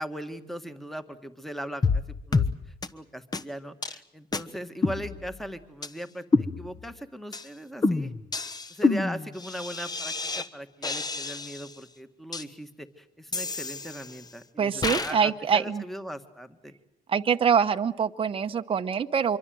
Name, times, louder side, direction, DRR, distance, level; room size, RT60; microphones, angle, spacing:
voice 1, 0.0-2.0 2.3-8.1 8.7-16.7, equal, ahead, 9 dB, 1.8 m, -39 dB
sound 1, 1.8-2.0 2.3-2.5 2.8-2.9 3.3-3.4 3.8-4.0 4.3-4.4 4.8-5.5 5.8-5.9 6.3-6.9 7.3-7.5 7.8-10.5 10.8-11.7 12.3-12.4 13.3-14.3 14.8-15.1, left 3 dB, 25° left, 1.2 m, -28 dB
voice 2, 14.6-15.8 17.1-19.4, right 7 dB, 30° right, 7 dB, 1.0 m, -24 dB
25.5 x 23.5 x 7.8 m, 0.74 s
cardioid pair, 110°, 17 cm